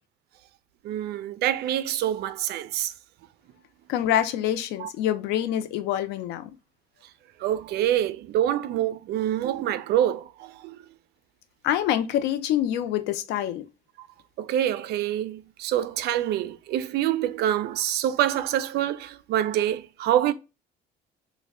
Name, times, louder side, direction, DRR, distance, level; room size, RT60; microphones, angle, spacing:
voice 1, 0.8-2.9 4.8-4.9 7.4-10.8 14.0-14.1 14.4-20.3, right 11 dB, 70° right, 0.4 m, -26 dB
voice 2, 3.9-6.5 11.6-13.7, left 11 dB, 90° left, 0.5 m, -26 dB
3.2 x 2.1 x 3.5 m
cardioid pair, 110°, 17 cm